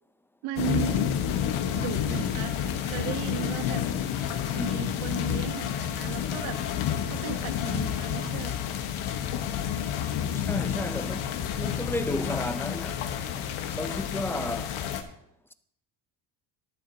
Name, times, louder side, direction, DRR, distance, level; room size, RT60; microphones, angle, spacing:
voice 1, 0.4-1.1 1.7-3.9 4.5-8.8, right 11 dB, 90° right, 1.1 m, -36 dB
sound 1, 0.6-15.0, left 9 dB, 85° left, 1.2 m, -30 dB
voice 2, 10.3-13.1 13.7-14.8, left 1 dB, 5° left, 0.3 m, -33 dB
12.0 x 11.0 x 2.7 m
cardioid pair, 120°, 48 cm